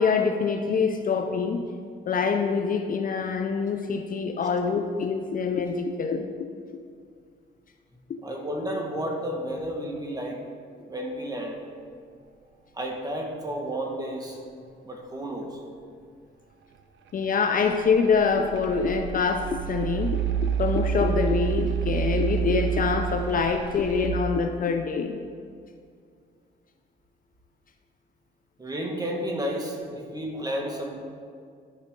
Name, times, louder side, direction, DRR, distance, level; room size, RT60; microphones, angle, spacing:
voice 1, 0.0-1.7 2.1-6.3 17.1-25.2, left 5 dB, 45° left, 5 dB, 0.5 m, -25 dB
voice 2, 8.2-10.4 10.9-11.6 12.7-14.4 14.8-15.6 28.6-31.0, equal, 20° right, 0 dB, 1.5 m, -32 dB
sound 1, 17.7-24.1, right 8 dB, 70° right, 0.6 m, -28 dB
11.5 x 5.0 x 3.7 m, 2.2 s
cardioid pair, 90°, 20 cm